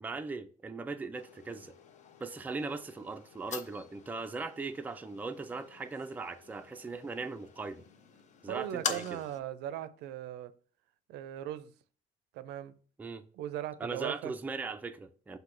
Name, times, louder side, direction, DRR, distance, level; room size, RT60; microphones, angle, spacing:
voice 1, 0.0-1.7 2.2-7.8 8.4-9.2 13.0-13.2 13.8-15.4, right 4 dB, 10° right, 0.3 m, -39 dB
sound 1, 1.1-9.4, left 6 dB, 45° left, 0.5 m, -44 dB
voice 2, 8.5-10.5 11.1-11.7 12.3-12.7 13.3-14.3, right 11 dB, 80° right, 0.4 m, -38 dB
5.9 x 2.7 x 2.6 m
cardioid pair, 110°, 17 cm